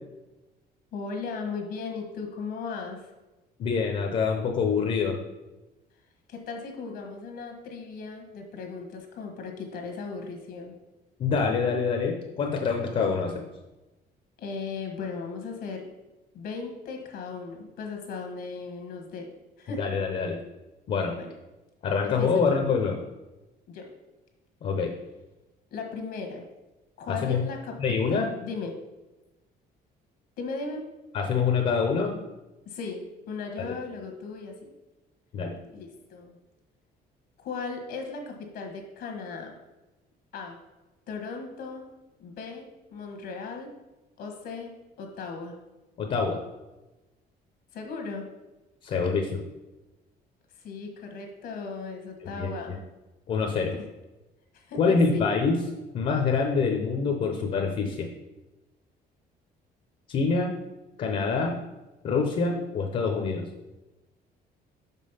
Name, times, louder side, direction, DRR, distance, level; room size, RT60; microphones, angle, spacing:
voice 1, 0.9-3.1 6.3-10.8 14.4-15.9 16.3-19.3 19.6-19.8 21.1-21.3 22.0-22.7 23.7-23.9 25.7-26.4 27.0-27.7 28.1-28.7 30.4-30.8 32.6-34.7 35.7-36.4 37.4-39.5 40.3-40.6 41.1-41.8 42.2-43.7 44.2-44.7 45.0-45.6 47.7-48.2 50.5-52.8 53.7-53.9 54.5-55.3, left 4 dB, 70° left, 3 dB, 1.4 m, -37 dB
voice 2, 3.6-5.2 11.2-13.5 19.7-20.4 20.9-21.2 21.8-23.0 24.6-25.0 27.1-27.4 27.8-28.3 31.1-32.2 33.6-33.7 35.3-35.5 46.0-46.4 48.8-49.4 52.4-52.8 53.3-53.8 54.8-55.6 55.9-58.1 60.1-60.6 61.0-61.6 62.0-63.4, left 5 dB, 45° left, 3 dB, 0.8 m, -26 dB
6.0 x 5.5 x 5.6 m, 1.1 s
cardioid pair, 170°, 17 cm